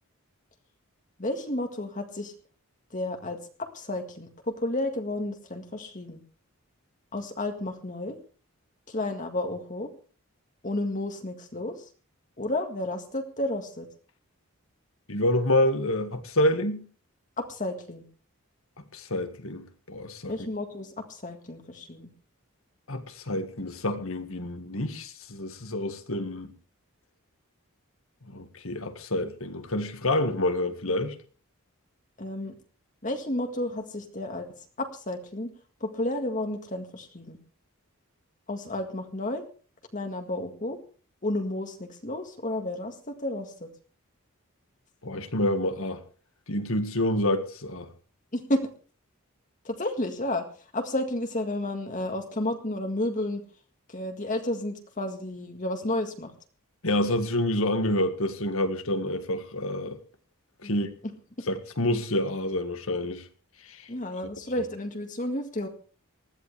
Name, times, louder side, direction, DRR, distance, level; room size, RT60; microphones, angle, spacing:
voice 1, 1.2-2.3 2.9-4.3 4.6-6.2 7.1-8.2 8.9-9.9 10.6-11.8 12.4-13.9 17.4-18.0 20.3-22.1 32.2-32.5 33.0-34.5 34.8-35.5 35.8-37.4 38.5-39.4 39.9-40.8 41.2-43.7 48.3-48.6 49.7-50.4 50.7-53.4 53.9-56.3 60.6-60.7 63.9-65.7, left 1 dB, 35° left, 1.8 m, -31 dB
voice 2, 15.1-16.9 18.9-20.3 22.9-26.5 28.3-31.2 45.0-46.0 46.5-47.9 56.8-60.0 60.6-60.9 61.5-63.2 63.7-63.8, left 1 dB, 65° left, 1.8 m, -28 dB
20.0 x 14.0 x 3.4 m
head